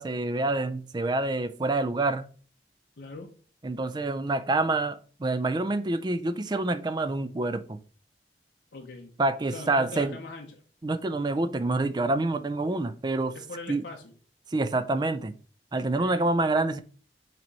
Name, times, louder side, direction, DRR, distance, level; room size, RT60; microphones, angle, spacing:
voice 1, 0.0-2.3 3.6-7.8 9.2-10.2 10.8-13.3 13.7-13.8 14.5-15.3 15.7-16.8, right 2 dB, 25° right, 0.4 m, -27 dB
voice 2, 3.0-3.3 8.7-9.1 9.5-10.6 13.3-14.1 15.8-16.3, left 3 dB, 75° left, 0.8 m, -42 dB
6.0 x 3.0 x 5.3 m
head